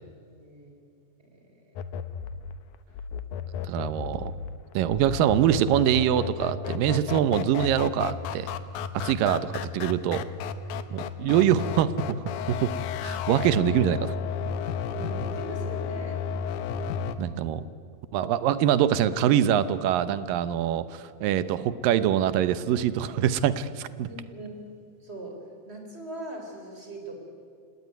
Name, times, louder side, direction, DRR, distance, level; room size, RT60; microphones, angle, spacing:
voice 1, 0.3-0.7 1.3-1.7 3.2-3.6 10.6-10.7 14.9-16.2 24.1-24.5 25.0-25.3 25.7-27.2, right 2 dB, 15° right, 3 dB, 4.1 m, -41 dB
sound 1, 1.8-17.2, left 6 dB, 70° left, 2.3 m, -33 dB
voice 2, 3.7-4.3 4.7-8.5 8.9-10.2 10.9-12.2 12.5-12.7 13.0-14.1 17.2-17.6 18.1-24.1, right 10 dB, 80° right, 14 dB, 2.5 m, -24 dB
29.0 x 18.0 x 9.5 m, 2.2 s
omnidirectional pair, 4.1 m